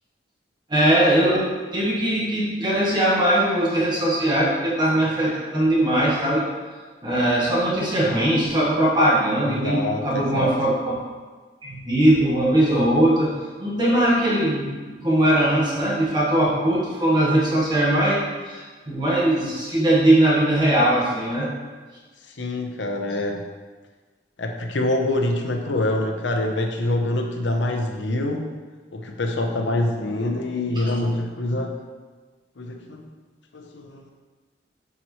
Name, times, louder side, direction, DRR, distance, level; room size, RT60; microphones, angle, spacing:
voice 1, 0.7-1.4 1.7-6.4 7.0-10.9 11.6-13.3 13.6-21.5, right 1 dB, 25° right, -6 dB, 1.5 m, -20 dB
voice 2, 9.4-10.5 22.4-23.5 24.4-28.5 28.9-31.8 32.6-33.1 33.5-34.0, left 1 dB, 90° left, 3 dB, 0.8 m, -25 dB
9.8 x 4.6 x 3.1 m, 1.4 s
head